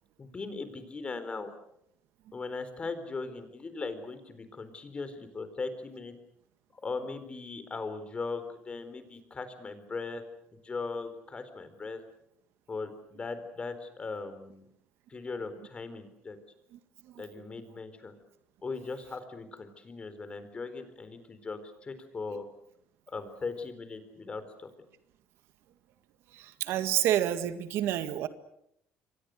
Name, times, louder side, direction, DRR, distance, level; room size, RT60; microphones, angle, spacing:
voice 1, 0.2-1.5 2.3-6.1 6.7-10.2 10.5-12.0 12.7-14.7 15.1-16.4 17.2-18.1 18.6-22.4 23.1-24.7, left 4 dB, 25° left, 10 dB, 4.2 m, -39 dB
voice 2, 26.3-28.3, right 12 dB, 75° right, 10 dB, 1.9 m, -29 dB
29.0 x 23.5 x 6.5 m, 0.73 s
cardioid pair, 115°, 4 cm